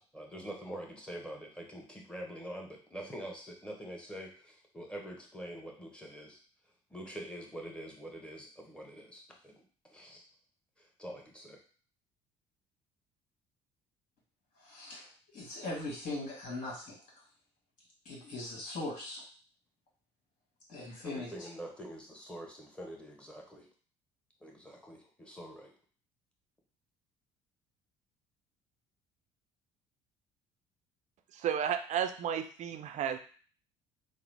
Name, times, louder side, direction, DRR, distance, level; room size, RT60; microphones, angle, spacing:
voice 1, 0.0-6.4 6.9-9.6 9.9-10.2 10.8-11.6 21.0-23.7 24.4-25.7, equal, 5° left, 0 dB, 1.2 m, -45 dB
voice 2, 14.6-17.0 18.1-19.2 20.7-21.5, left 2 dB, 50° left, -4 dB, 1.7 m, -40 dB
voice 3, 31.3-33.2, right 8 dB, 50° right, 8 dB, 0.4 m, -33 dB
3.6 x 2.1 x 3.4 m, 0.41 s
hypercardioid pair, 65°, 15 cm